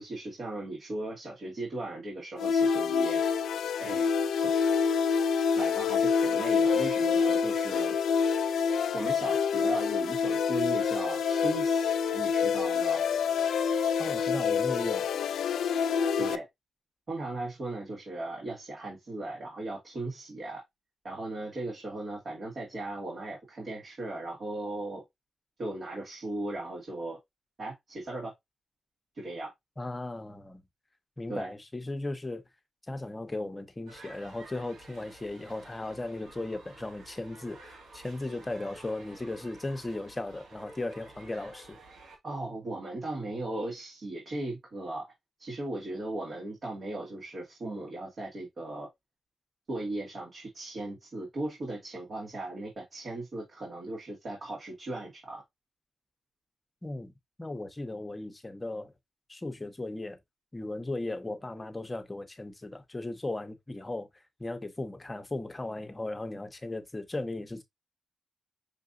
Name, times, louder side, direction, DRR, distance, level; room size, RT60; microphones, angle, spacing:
voice 1, 0.0-3.2 3.8-4.5 5.6-7.9 8.9-13.0 16.2-16.5 17.1-20.6 21.0-25.0 25.6-27.2 27.6-28.3 29.1-29.5 31.3-31.5 42.2-45.1 45.4-48.9 49.7-55.4, right 2 dB, 55° right, 1.9 m, -37 dB
sound 1, 2.4-16.4, left 6 dB, 90° left, 0.4 m, -27 dB
voice 2, 14.0-15.1 29.8-30.6 31.2-32.4 32.9-41.8 56.8-57.1 57.4-58.9 59.3-60.2 60.5-64.1 64.4-67.6, left 2 dB, 20° left, 0.9 m, -36 dB
sound 2, 33.9-42.2, right 2 dB, 85° right, 2.0 m, -52 dB
5.8 x 2.6 x 2.5 m
cardioid pair, 75°, 0 cm